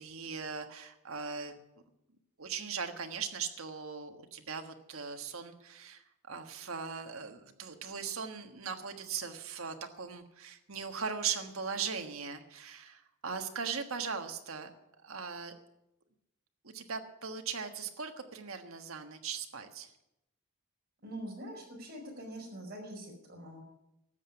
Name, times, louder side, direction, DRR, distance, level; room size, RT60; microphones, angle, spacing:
voice 1, 0.0-1.6 2.4-14.7 15.0-15.5 16.6-19.9, right 6 dB, 70° right, 6 dB, 1.5 m, -39 dB
voice 2, 21.0-23.6, right 1 dB, 45° right, 0 dB, 5.0 m, -44 dB
13.0 x 8.0 x 9.8 m, 0.86 s
head